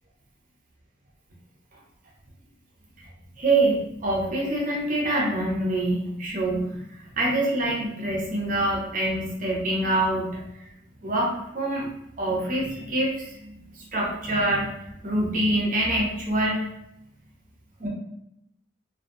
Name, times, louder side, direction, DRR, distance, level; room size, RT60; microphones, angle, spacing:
voice 1, 3.4-10.4 11.0-11.9 12.2-14.7 15.0-16.6 17.8-17.9, right 1 dB, 40° right, -4 dB, 0.6 m, -25 dB
2.5 x 2.2 x 2.5 m, 0.83 s
head